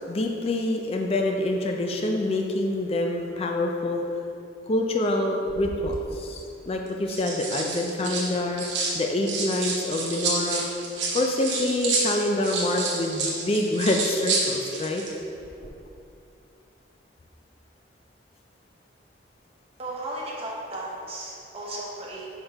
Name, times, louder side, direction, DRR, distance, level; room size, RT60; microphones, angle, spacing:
voice 1, 0.1-4.0 4.7-8.6 8.9-10.6 11.1-15.0, left 1 dB, 30° left, 2 dB, 0.4 m, -26 dB
sound 1, 5.5-6.0 6.9-9.0 9.3-15.1 15.4-15.7, right 3 dB, 70° right, 1.0 m, -29 dB
voice 2, 19.8-22.3, right 1 dB, 30° right, -4 dB, 1.0 m, -35 dB
5.6 x 5.4 x 3.4 m, 2.6 s
head